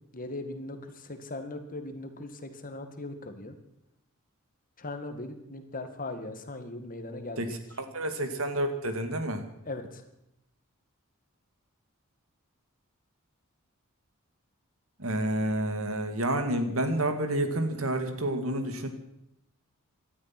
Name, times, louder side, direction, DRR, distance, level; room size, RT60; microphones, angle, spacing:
voice 1, 0.1-3.5 4.8-7.6 9.7-10.0, left 2 dB, 40° left, 7 dB, 1.9 m, -39 dB
voice 2, 7.8-9.4 15.0-18.9, right 1 dB, 70° right, 8 dB, 2.2 m, -29 dB
18.0 x 12.5 x 6.0 m, 0.81 s
head